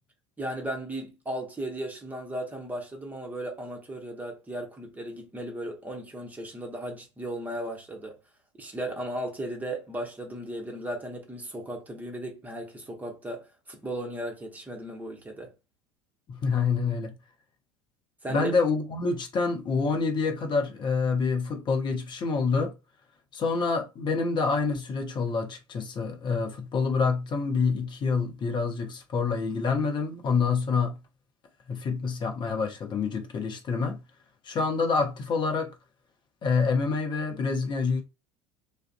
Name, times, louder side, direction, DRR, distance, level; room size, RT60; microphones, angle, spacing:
voice 1, 0.4-8.2 8.6-15.5 18.2-18.5, right 1 dB, 10° right, 0.8 m, -36 dB
voice 2, 16.3-17.1 18.3-22.7 23.3-31.0 31.7-34.0 34.4-35.7 36.4-38.0, left 4 dB, 30° left, 0.7 m, -27 dB
2.4 x 2.0 x 2.5 m
figure-of-eight pair, 70°, 16 cm